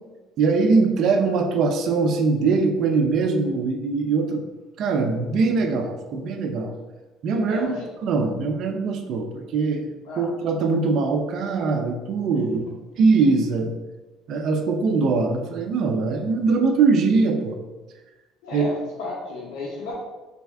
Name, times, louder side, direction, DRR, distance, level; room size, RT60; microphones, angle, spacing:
voice 1, 0.4-4.4 4.8-6.7 7.2-12.7 13.0-13.7 14.3-17.6 18.5-18.7, right 4 dB, 45° right, 4 dB, 0.4 m, -22 dB
voice 2, 7.4-7.9 10.0-10.3 18.4-20.0, left 2 dB, 80° left, -4 dB, 0.7 m, -33 dB
3.3 x 2.3 x 3.2 m, 1.2 s
cardioid pair, 165°, 0 cm